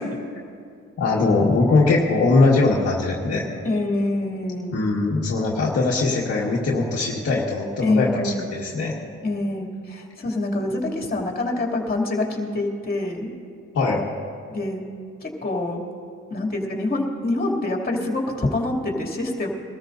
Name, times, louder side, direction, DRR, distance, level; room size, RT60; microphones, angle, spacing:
voice 1, 1.0-3.4 4.7-9.0 13.7-14.0, left 3 dB, 50° left, -4 dB, 1.8 m, -21 dB
voice 2, 3.6-4.8 7.8-8.5 9.2-13.3 14.5-14.8 15.2-15.8 16.3-19.5, left 2 dB, 30° left, 0 dB, 2.8 m, -25 dB
22.5 x 13.5 x 2.7 m, 2.3 s
cardioid pair, 90°, 30 cm